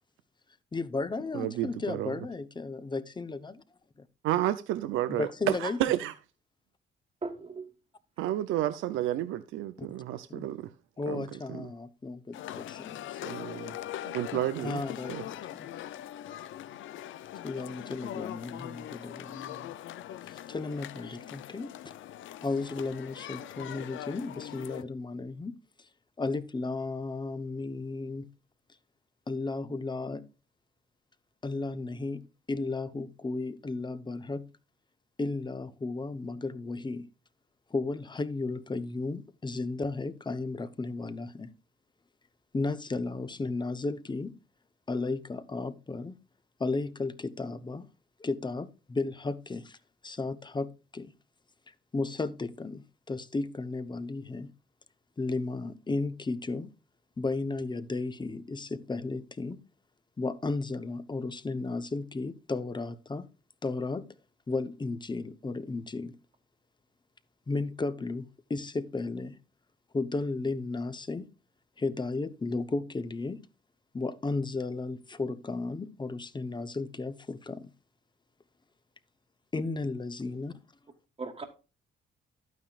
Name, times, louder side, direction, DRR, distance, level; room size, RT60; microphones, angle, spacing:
voice 1, 0.7-3.6 5.1-5.8 9.8-9.9 10.3-10.5 11.0-13.5 14.6-15.7 17.4-19.7 20.3-21.7 22.4-25.5 25.8-25.9 26.2-28.3 29.3-30.3 31.4-34.5 35.2-37.1 37.7-41.5 42.5-44.3 44.9-46.2 46.6-47.9 48.2-49.8 50.0-51.1 51.9-54.5 55.2-56.7 57.2-59.6 60.2-63.3 63.6-64.1 64.5-66.2 67.5-69.4 69.9-71.3 71.8-73.5 73.9-77.7 79.5-80.5, left 3 dB, 20° left, 0.9 m, -34 dB
voice 2, 1.3-2.1 4.2-6.1 8.2-10.7 11.1-11.7 13.2-13.8 14.0-14.8 15.1-15.2, right 13 dB, 90° right, 0.6 m, -31 dB
voice 3, 7.2-7.7 23.3-23.5 81.2-81.4, right 3 dB, 30° right, 1.6 m, -38 dB
sound 1, 12.3-24.8, left 12 dB, 75° left, 0.6 m, -41 dB
11.5 x 9.4 x 2.4 m
cardioid pair, 90°, 20 cm